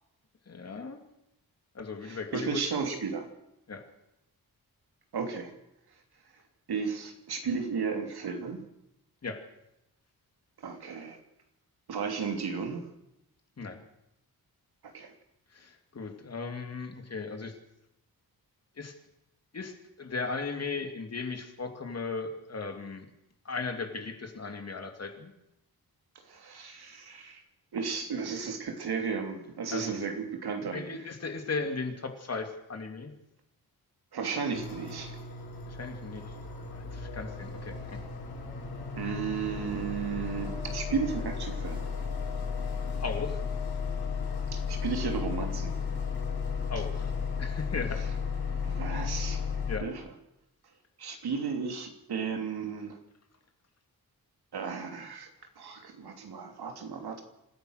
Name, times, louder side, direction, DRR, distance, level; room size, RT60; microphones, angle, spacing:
voice 1, 0.5-1.0 1.7-2.6 3.7-3.8 9.2-9.4 13.6-13.8 15.5-17.5 18.8-18.9 19.5-23.1 23.4-25.3 29.7-30.0 30.7-33.1 35.7-36.2 36.7-38.0 43.0-43.4 46.7-47.1 47.4-48.0 49.7-49.9, left 4 dB, 40° left, 5 dB, 2.7 m, -37 dB
voice 2, 2.0-3.3 5.1-5.5 6.7-8.6 10.6-11.2 11.9-12.8 14.9-15.1 26.3-27.4 27.7-31.1 34.1-35.2 39.0-41.9 44.5-45.8 48.6-49.4 49.8-50.1 51.0-53.0 54.5-55.3 55.6-57.2, right 5 dB, 85° right, 4 dB, 3.2 m, -34 dB
sound 1, 34.5-49.8, left 5 dB, 85° left, 6.5 m, -34 dB
26.5 x 15.5 x 6.6 m, 0.84 s
wide cardioid pair, 175°, 37 cm